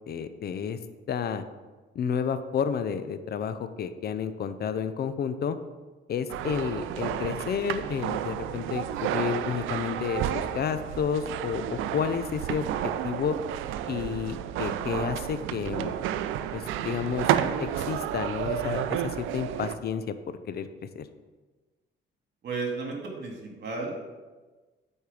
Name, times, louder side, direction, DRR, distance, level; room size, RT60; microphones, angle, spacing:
voice 1, 0.1-0.8 1.1-1.4 1.9-5.6 6.1-12.6 13.0-13.4 13.9-15.9 16.5-20.2 20.5-20.7 21.0-21.1, left 7 dB, 55° left, 11 dB, 0.6 m, -31 dB
sound 1, 6.3-19.8, right 10 dB, 90° right, 0.4 m, -31 dB
voice 2, 22.4-24.0, right 3 dB, 60° right, 0 dB, 2.0 m, -33 dB
8.4 x 4.5 x 4.8 m, 1.3 s
cardioid pair, 90°, 20 cm